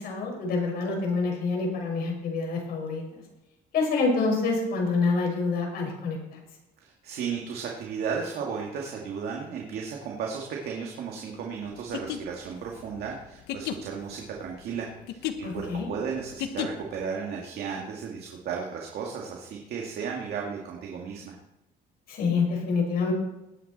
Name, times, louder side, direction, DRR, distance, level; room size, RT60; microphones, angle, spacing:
voice 1, 0.0-3.0 3.7-6.4 15.4-15.9 22.1-23.1, left 4 dB, 65° left, 0 dB, 5.7 m, -27 dB
voice 2, 7.0-21.4, right 6 dB, 70° right, -1 dB, 2.3 m, -34 dB
sound 1, 11.8-17.0, left 10 dB, 85° left, 1.2 m, -35 dB
19.0 x 9.7 x 4.4 m, 0.92 s
cardioid pair, 110°, 17 cm